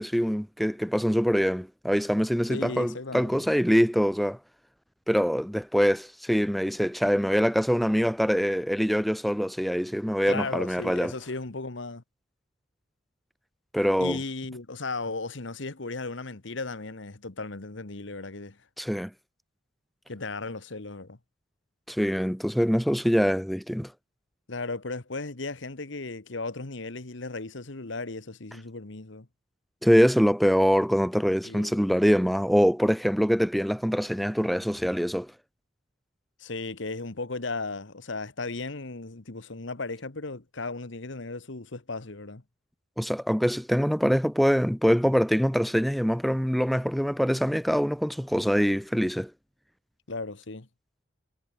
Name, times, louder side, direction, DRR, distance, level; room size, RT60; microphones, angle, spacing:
voice 1, 0.0-4.4 5.1-11.1 13.7-14.2 18.8-19.1 21.9-23.9 29.8-35.3 43.0-49.3, equal, ahead, 0.9 m, -24 dB
voice 2, 2.5-3.5 10.3-12.0 14.0-18.6 20.1-21.2 24.5-29.3 31.4-31.8 36.4-42.4 50.1-50.7, left 3 dB, 65° left, 1.4 m, -36 dB
head